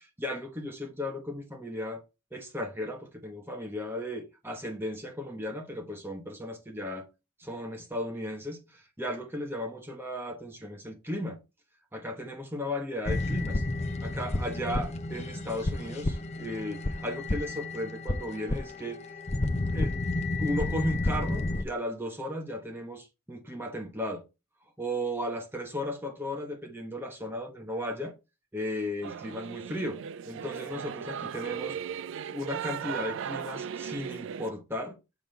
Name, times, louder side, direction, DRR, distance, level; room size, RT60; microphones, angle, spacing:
voice 1, 0.0-2.0 2.3-7.1 7.4-11.4 11.9-13.6 14.0-19.1 19.7-20.0 20.4-24.2 24.8-28.1 28.5-31.8 32.3-35.0, left 1 dB, 10° right, 1.1 m, -35 dB
sound 1, 13.0-21.6, left 2 dB, 30° left, 0.7 m, -31 dB
Singing / Musical instrument, 29.0-34.5, right 8 dB, 60° right, 0.3 m, -37 dB
7.1 x 6.0 x 3.5 m
head